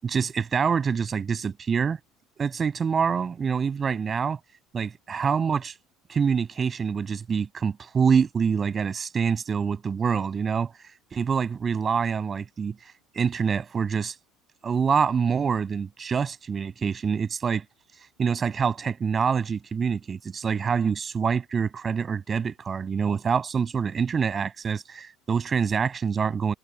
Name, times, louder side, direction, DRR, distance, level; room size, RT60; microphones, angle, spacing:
voice 1, 0.0-2.0 2.4-4.4 4.7-5.7 6.1-10.7 11.1-12.8 13.1-14.1 14.6-17.6 18.2-26.5, right 6 dB, 30° right, 7.3 m, -26 dB
supercardioid pair, 105°, 0 cm